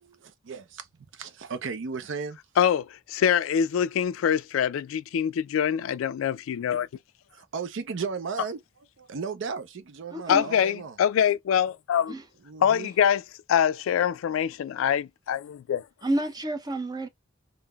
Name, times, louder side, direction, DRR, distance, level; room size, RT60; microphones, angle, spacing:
voice 1, 0.0-0.9 1.1-2.4 7.3-8.6 9.0-11.0 12.4-12.9, right 5 dB, 70° right, 0.5 m, -35 dB
voice 2, 2.6-6.9 10.3-12.1 12.6-13.2 13.5-15.8, left 8 dB, 90° left, 0.3 m, -24 dB
voice 3, 10.1-10.5 12.1-12.2 16.0-17.1, right 1 dB, 20° right, 0.5 m, -29 dB
3.7 x 2.0 x 2.2 m
head